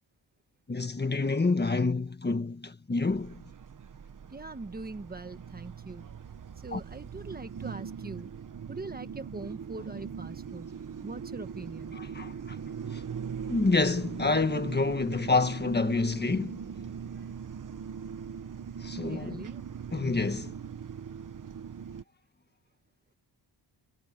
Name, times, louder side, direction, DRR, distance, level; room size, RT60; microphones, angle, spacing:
voice 1, 0.7-3.4 6.7-6.8 11.9-12.6 12.9-13.0 13.5-16.7 18.8-19.5 19.9-20.5, left 3 dB, 20° left, 1.5 m, -28 dB
sound 1, 3.1-22.0, right 7 dB, 45° right, 1.1 m, -41 dB
voice 2, 4.3-6.1 6.6-8.3 8.7-10.7 11.0-12.0 19.0-19.7, right 3 dB, 20° right, 1.4 m, -42 dB
wide cardioid pair, 180°, 45 cm